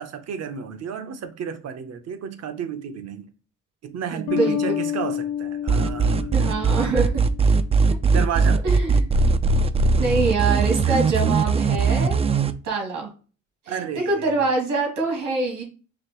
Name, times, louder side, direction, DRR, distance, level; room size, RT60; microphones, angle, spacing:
voice 1, 0.0-3.3 3.8-6.3 6.7-7.1 8.1-8.6 10.8-11.0 13.7-14.5, right 7 dB, 55° right, 0.8 m, -32 dB
voice 2, 4.1-4.6 6.3-7.1 8.6-9.1 10.0-12.2 12.6-13.1 13.9-15.6, right 3 dB, 80° right, 2.1 m, -24 dB
sound 1, 4.3-7.6, left 9 dB, 90° left, 0.7 m, -29 dB
sound 2, 5.7-12.5, right 4 dB, 20° right, 0.3 m, -19 dB
5.0 x 2.9 x 2.9 m
cardioid pair, 90°, 30 cm